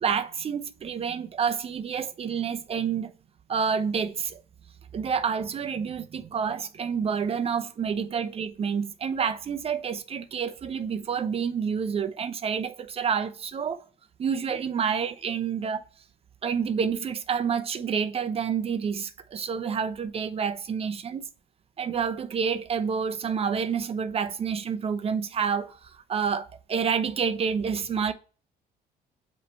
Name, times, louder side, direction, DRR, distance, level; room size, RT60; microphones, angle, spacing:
voice 1, 0.0-3.1 3.5-4.4 4.9-13.8 14.2-15.8 16.4-21.3 21.8-25.8 26.1-28.1, right 6 dB, 35° right, 0.6 m, -28 dB
7.8 x 3.2 x 4.1 m
cardioid pair, 110°, 17 cm